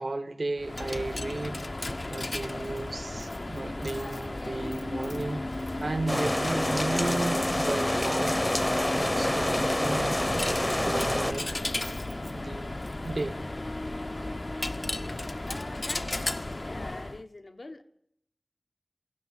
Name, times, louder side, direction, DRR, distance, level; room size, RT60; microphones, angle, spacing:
voice 1, 0.0-1.6 2.1-8.3 8.9-10.2 10.6-11.5 12.3-12.7 13.0-13.4 14.3-14.4, right 2 dB, 80° right, 1.7 m, -34 dB
Coin (dropping), 0.6-17.2, left 2 dB, 55° left, 0.9 m, -34 dB
sound 1, 6.1-11.3, left 1 dB, 25° left, 0.9 m, -27 dB
voice 2, 15.4-17.8, left 2 dB, 75° left, 1.4 m, -44 dB
17.5 x 16.0 x 9.7 m
wide cardioid pair, 45°, 0 cm